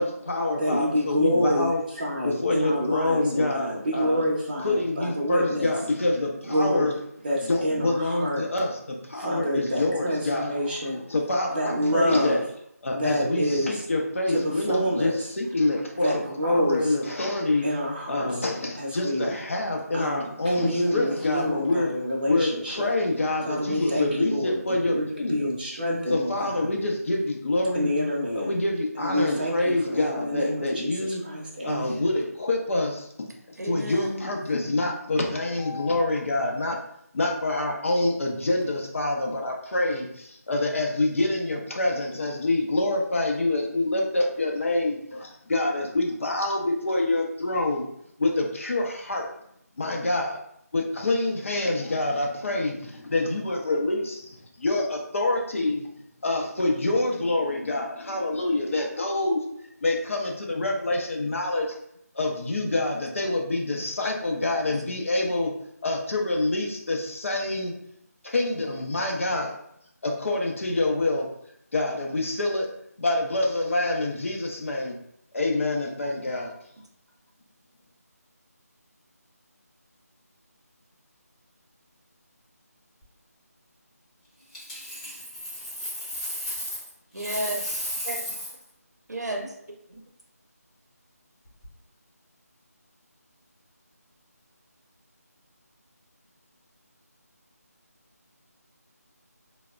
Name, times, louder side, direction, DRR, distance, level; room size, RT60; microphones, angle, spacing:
voice 1, 0.0-1.8 2.2-4.2 4.6-7.0 7.4-10.8 11.1-12.4 12.8-17.6 18.1-21.9 22.3-25.5 26.1-27.9 28.4-31.2 31.6-33.1 33.5-36.8 37.1-47.8 48.2-49.3 49.8-50.4 50.7-55.9 56.2-59.4 59.8-61.7 62.1-65.5 65.8-67.7 68.2-69.5 70.0-71.3 71.7-72.7 73.0-75.0 75.3-76.5, left 2 dB, 50° left, 0 dB, 0.5 m, -26 dB
voice 2, 0.6-5.7 6.5-6.9 7.2-8.5 9.2-11.0 11.5-12.4 12.9-13.8 14.3-15.1 16.0-17.0 17.6-18.3 18.8-19.3 19.9-22.9 23.5-26.5 27.7-28.5 29.0-32.0, equal, 35° right, -3 dB, 0.6 m, -28 dB
voice 3, 33.6-34.3 65.0-65.1 76.0-76.1 87.1-88.2 89.1-89.5 89.9-90.0, right 1 dB, 85° right, 1 dB, 0.6 m, -33 dB
Coin (dropping), 84.5-86.9 87.2-88.6 91.4-91.7, equal, 25° left, 0.8 m, -34 dB
3.1 x 2.0 x 2.3 m, 0.73 s
figure-of-eight pair, 165°, 9 cm